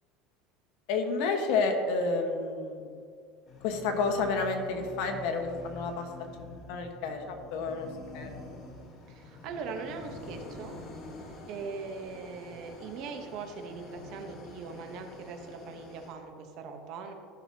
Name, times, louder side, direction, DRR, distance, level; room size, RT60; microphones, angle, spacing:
voice 1, 0.9-2.9 3.6-6.1 6.4-7.9 8.1-8.3, left 4 dB, 65° left, 4 dB, 1.3 m, -30 dB
sound 1, 3.5-16.1, left 2 dB, 35° left, 1.3 m, -47 dB
voice 2, 9.1-10.8 11.5-17.1, right 5 dB, 55° right, 5 dB, 1.1 m, -41 dB
14.0 x 6.4 x 2.9 m, 2.2 s
cardioid pair, 150°, 0 cm